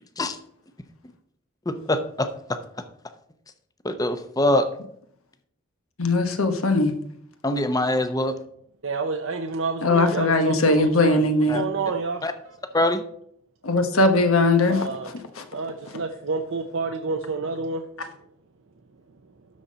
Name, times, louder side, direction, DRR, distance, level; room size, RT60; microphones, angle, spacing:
voice 1, 1.7-2.6 3.8-4.7 7.4-8.3 11.5-11.6 12.2-12.3 12.7-13.0, left 1 dB, 15° left, 8 dB, 0.7 m, -23 dB
voice 2, 6.0-6.9 9.8-11.6 13.6-14.9 15.4-15.5, left 2 dB, 90° left, 7 dB, 1.2 m, -20 dB
voice 3, 8.8-12.2 14.7-15.1 15.5-17.8, right 4 dB, 65° right, 4 dB, 0.7 m, -29 dB
12.5 x 4.3 x 5.2 m, 0.68 s
head